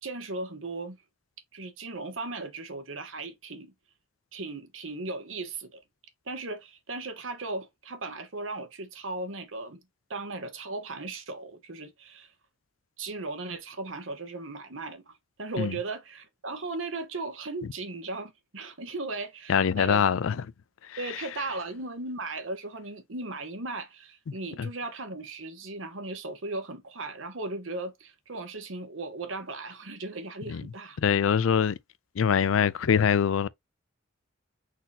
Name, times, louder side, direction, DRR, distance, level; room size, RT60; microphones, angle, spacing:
voice 1, 0.0-1.0 1.5-3.7 4.3-5.8 6.3-9.8 10.1-12.3 13.0-20.2 21.0-31.0, right 3 dB, 85° right, 1.2 m, -37 dB
voice 2, 19.5-20.3 24.6-24.7 30.5-30.6 31.0-31.8 32.2-33.5, left 7 dB, 90° left, 0.4 m, -23 dB
4.1 x 2.8 x 4.1 m
head